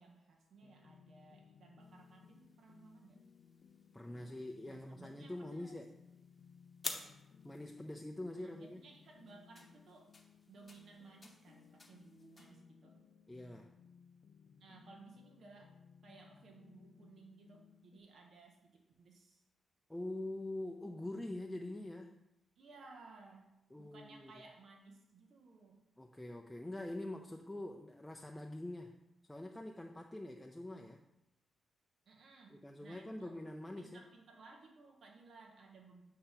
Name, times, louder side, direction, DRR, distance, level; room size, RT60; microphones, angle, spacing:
voice 1, 0.0-3.2 4.6-5.8 8.3-10.1 10.5-13.0 14.6-15.8 16.0-19.4 22.6-23.5 23.8-25.8 32.1-33.4 33.8-36.0, right 3 dB, 65° right, 1 dB, 0.8 m, -59 dB
sound 1, 0.6-18.0, left 6 dB, 70° left, 0.4 m, -62 dB
sound 2, 1.8-12.6, left 3 dB, 30° left, 0.9 m, -53 dB
voice 2, 3.9-5.9 7.4-8.8 13.3-13.7 19.9-22.1 23.7-24.3 26.0-28.9 29.3-31.0 32.5-34.0, left 1 dB, 10° left, 2 dB, 0.5 m, -45 dB
8.5 x 2.8 x 5.7 m, 0.91 s
cardioid pair, 80°, 0 cm